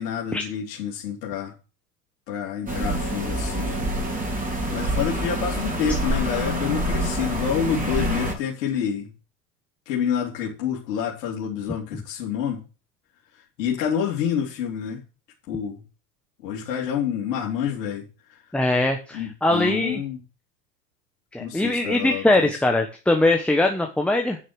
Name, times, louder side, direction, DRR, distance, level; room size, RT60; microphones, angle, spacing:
voice 1, 0.0-1.5 2.3-4.3 4.7-9.1 9.9-12.6 13.6-15.0 15.5-15.8 16.4-18.1 19.1-20.2 21.4-22.5, left 8 dB, 75° left, -3 dB, 3.3 m, -28 dB
sound 1, 2.7-8.3, right 1 dB, 15° right, 3.5 m, -26 dB
voice 2, 18.5-20.0 21.3-24.4, left 2 dB, ahead, 3 dB, 1.2 m, -21 dB
9.7 x 6.5 x 6.4 m, 0.33 s
hypercardioid pair, 100°, 49 cm